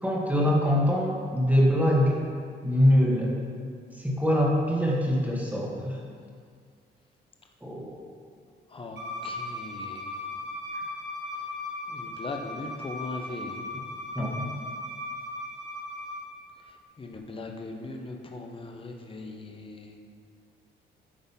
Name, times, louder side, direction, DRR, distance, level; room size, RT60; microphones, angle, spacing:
voice 1, 0.0-2.2 2.6-3.4 4.0-6.0 7.6-8.0 14.2-14.5, equal, 10° right, -4 dB, 1.8 m, -23 dB
voice 2, 8.7-10.3 11.4-11.5 11.9-13.6 16.6-20.0, left 2 dB, 25° left, 2 dB, 1.0 m, -40 dB
Bowed string instrument, 9.0-16.2, left 2 dB, 60° right, 2.0 m, -37 dB
10.0 x 3.9 x 5.5 m, 2.1 s
cardioid pair, 90°, 20 cm